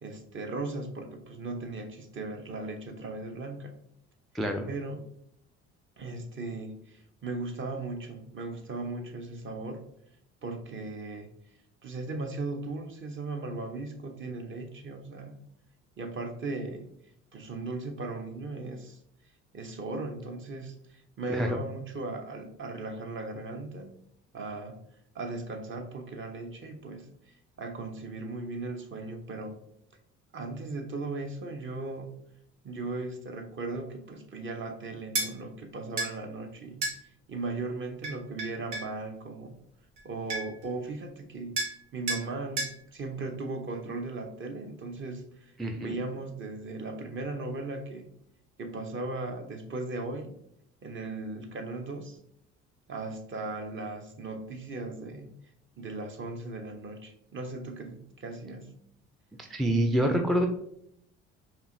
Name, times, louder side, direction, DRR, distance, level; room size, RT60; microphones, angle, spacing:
voice 1, 0.0-3.7 4.7-5.0 6.0-9.8 10.4-11.3 11.8-15.4 16.0-16.9 17.3-19.0 19.5-23.9 24.3-24.8 25.1-27.1 27.6-29.6 30.3-32.1 32.6-36.8 37.3-39.5 40.0-48.1 48.6-50.4 50.8-52.2 52.9-55.3 55.8-58.7, right 3 dB, 35° right, 5 dB, 0.7 m, -37 dB
voice 2, 4.3-4.7 21.3-21.5 45.6-45.9 59.4-60.5, right 1 dB, ahead, 4 dB, 0.3 m, -26 dB
sound 1, 35.1-35.3 36.0-36.1 36.8-37.0 38.0-38.9 40.0-40.1 40.3-40.6 41.6-41.8 42.1-42.3 42.6-42.8, right 2 dB, 85° right, 0.9 m, -31 dB
5.4 x 2.2 x 2.6 m, 0.72 s
hypercardioid pair, 60°, 35 cm